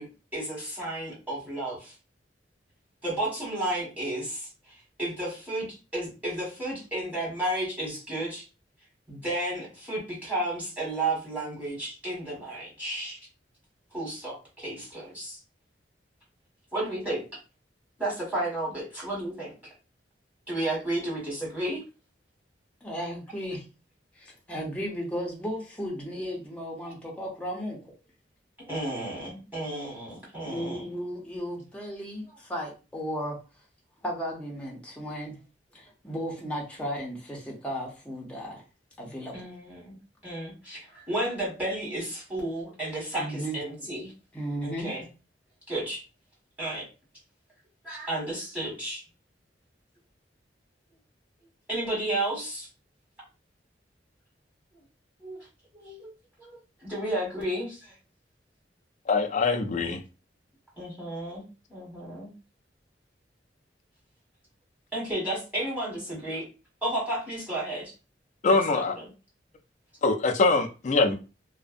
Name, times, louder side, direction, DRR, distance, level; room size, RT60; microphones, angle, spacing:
voice 1, 0.0-1.9 3.0-8.4 9.1-13.2 13.9-15.4 16.7-17.2 18.0-19.5 20.5-21.8 26.8-26.9 28.6-30.9 39.3-39.9 40.2-44.1 44.6-45.1 45.7-46.0 46.6-46.8 47.8-49.0 51.7-52.7 55.2-55.5 55.7-56.1 56.4-57.9 60.8-61.4 61.7-62.3 64.9-66.4 66.8-67.9 68.7-69.0, right 1 dB, 10° right, 1.4 m, -32 dB
voice 2, 22.8-23.6 24.2-27.8 30.4-33.4 34.0-35.4 35.7-38.6 39.0-39.4 43.2-43.6 44.3-44.9, equal, 5° left, 0.6 m, -35 dB
voice 3, 59.1-60.0 68.4-69.0 70.0-71.1, left 3 dB, 40° left, 0.4 m, -23 dB
2.5 x 2.1 x 2.5 m
head